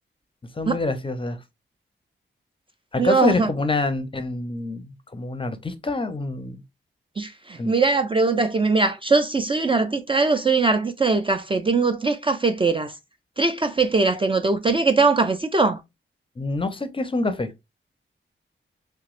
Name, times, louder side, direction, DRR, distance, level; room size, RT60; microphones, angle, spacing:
voice 1, 0.5-1.4 2.9-6.6 7.6-7.7 16.4-17.5, left 2 dB, 25° left, 0.5 m, -26 dB
voice 2, 3.0-3.5 7.2-12.9 13.4-15.8, right 3 dB, 25° right, 0.4 m, -21 dB
3.3 x 3.0 x 2.4 m
wide cardioid pair, 90°, 21 cm